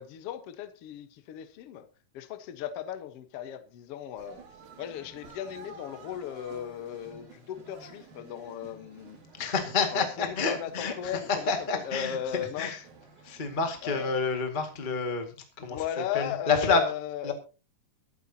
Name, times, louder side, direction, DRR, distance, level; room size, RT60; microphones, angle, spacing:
voice 1, 0.0-1.9 2.1-4.4 4.8-9.2 9.9-10.1 10.5-12.8 13.8-14.2 15.7-17.3, left 10 dB, 80° left, 1.3 m, -36 dB
sound 1, 4.2-6.9 7.6-8.2, right 4 dB, 70° right, 3.9 m, -51 dB
sound 2, 4.3-14.2, right 4 dB, 50° right, 4.8 m, -54 dB
voice 2, 9.4-12.2 12.6-12.8 13.2-15.8 16.1-16.9 17.2-17.3, left 4 dB, 35° left, 0.7 m, -29 dB
23.5 x 8.4 x 2.8 m
omnidirectional pair, 4.6 m